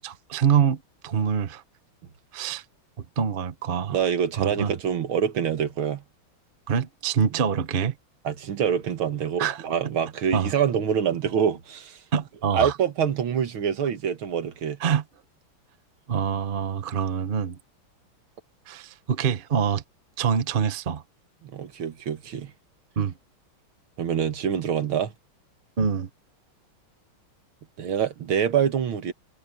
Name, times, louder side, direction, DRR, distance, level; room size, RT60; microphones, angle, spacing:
voice 1, 0.0-1.6 2.3-2.6 3.2-4.0 4.3-4.7 6.7-7.9 9.4-9.6 10.3-10.5 12.1-12.7 14.8-15.0 16.1-17.6 18.7-19.8 20.2-21.0 23.0-23.1 25.8-26.1, right 7 dB, 40° right, 0.8 m, -25 dB
voice 2, 3.9-6.0 8.2-12.0 12.5-14.8 21.4-22.5 24.0-25.1 27.8-29.1, right 8 dB, 75° right, 2.3 m, -25 dB
omnidirectional pair, 2.3 m